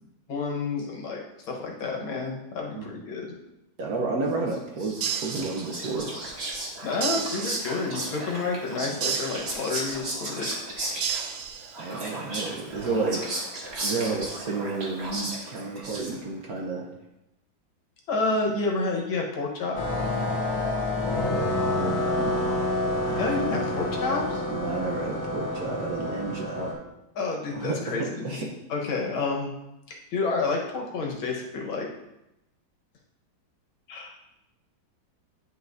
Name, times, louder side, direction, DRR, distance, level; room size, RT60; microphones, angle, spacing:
voice 1, 0.3-3.3 6.8-10.6 18.1-19.8 23.2-24.4 27.2-29.5 29.9-31.9 33.9-34.2, left 3 dB, 80° left, 0 dB, 2.0 m, -29 dB
voice 2, 3.8-4.9 5.2-6.1 7.0-7.2 11.8-13.5 13.8-16.9 21.8-22.6 23.1-23.3 24.5-26.7 27.5-28.0 28.2-28.5, right 3 dB, 60° right, 0 dB, 1.1 m, -31 dB
Whispering, 4.5-16.4, right 2 dB, 35° right, 1.3 m, -35 dB
sound 1, 5.0-6.1 7.0-8.1 9.0-10.1 11.0-12.1, right 8 dB, 85° right, 1.4 m, -33 dB
sound 2, 19.7-26.7, left 1 dB, 55° left, 2.0 m, -28 dB
9.7 x 5.8 x 2.6 m, 0.90 s
omnidirectional pair, 2.2 m